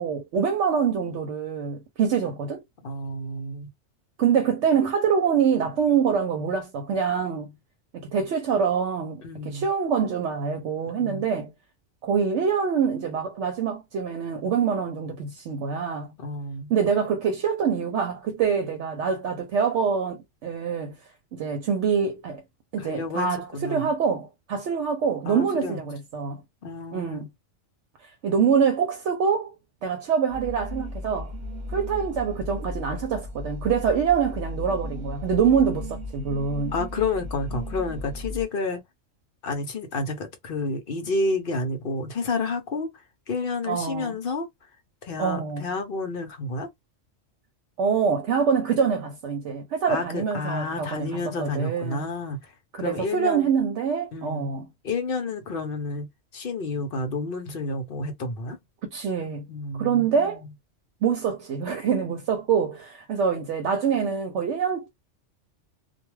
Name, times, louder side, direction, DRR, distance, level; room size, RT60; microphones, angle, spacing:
voice 1, 0.0-2.6 4.2-7.5 7.9-11.5 12.0-16.1 16.7-21.0 21.3-22.4 22.7-26.4 26.9-27.3 28.0-29.5 29.8-31.3 31.7-36.7 43.7-44.2 45.2-45.7 47.8-52.1 52.7-54.7 58.8-59.4 59.8-60.4 61.0-64.9, right 6 dB, 70° right, 0.9 m, -25 dB
voice 2, 2.8-3.7 9.2-9.7 10.9-11.2 16.2-16.7 22.8-23.9 25.3-25.8 26.6-27.3 36.7-38.8 39.4-42.9 43.3-44.5 45.0-46.7 49.9-52.5 52.8-53.5 54.1-54.5 54.8-56.1 56.3-58.6 59.5-60.5, left 3 dB, 55° left, 0.8 m, -30 dB
sound 1, 30.3-38.4, left 1 dB, 40° right, 0.9 m, -35 dB
2.3 x 2.2 x 3.1 m
omnidirectional pair, 1.3 m